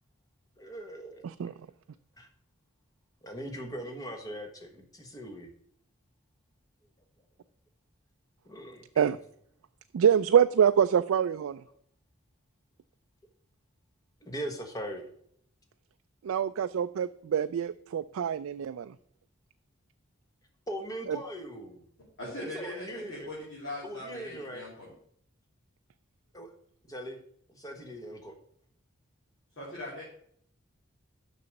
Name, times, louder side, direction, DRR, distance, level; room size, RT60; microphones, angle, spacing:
voice 1, 0.6-1.3 2.2-2.3 3.2-5.5 8.4-8.9 14.2-15.0 20.7-21.8 22.5-23.3 23.8-24.7 26.3-26.5 26.9-27.2 27.5-28.3, equal, 20° left, 4 dB, 1.4 m, -40 dB
voice 2, 1.2-1.5 9.0-9.2 9.9-11.6 16.2-18.9 21.1-21.2, right 8 dB, 80° right, 10 dB, 0.3 m, -25 dB
voice 3, 22.2-24.9 29.6-30.0, left 1 dB, 60° left, -6 dB, 3.1 m, -40 dB
6.8 x 6.1 x 6.6 m, 0.65 s
head